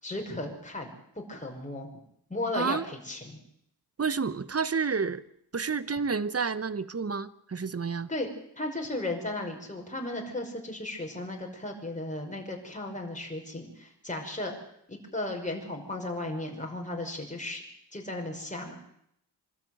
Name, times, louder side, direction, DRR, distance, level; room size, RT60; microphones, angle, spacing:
voice 1, 0.0-0.9 1.3-1.9 2.3-3.4 8.1-8.3 8.6-14.5 14.9-17.6 17.9-18.8, left 2 dB, 20° left, 0 dB, 5.7 m, -35 dB
voice 2, 2.5-2.8 4.0-5.2 5.5-8.1, right 5 dB, 35° right, 16 dB, 1.1 m, -30 dB
25.0 x 13.0 x 9.3 m, 0.72 s
wide cardioid pair, 75°, 41 cm